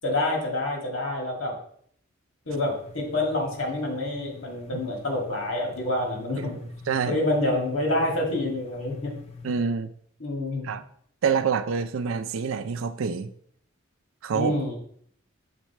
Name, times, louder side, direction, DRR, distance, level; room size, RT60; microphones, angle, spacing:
voice 1, 0.0-1.6 2.5-6.6 7.1-9.2 10.2-10.7 14.3-14.8, left 1 dB, 90° left, 1.8 m, -27 dB
sound 1, 2.5-9.5, left 5 dB, 30° left, 0.5 m, -45 dB
voice 2, 6.4-7.2 9.4-9.9 10.6-10.8 11.2-13.3 14.2-14.6, right 6 dB, 85° right, 0.4 m, -27 dB
6.7 x 3.2 x 4.5 m
head